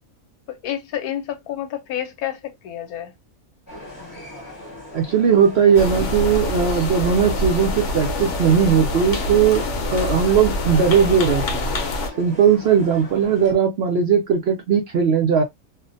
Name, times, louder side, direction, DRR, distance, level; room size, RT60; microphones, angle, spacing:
voice 1, 0.6-3.1, left 11 dB, 85° left, 1.1 m, -29 dB
sound 1, 3.7-13.5, left 1 dB, 15° left, 0.8 m, -39 dB
voice 2, 4.9-11.6 12.2-15.4, right 7 dB, 70° right, 0.6 m, -18 dB
sound 2, 5.7-12.1, left 2 dB, 65° left, 0.9 m, -25 dB
2.5 x 2.1 x 2.5 m
omnidirectional pair, 1.6 m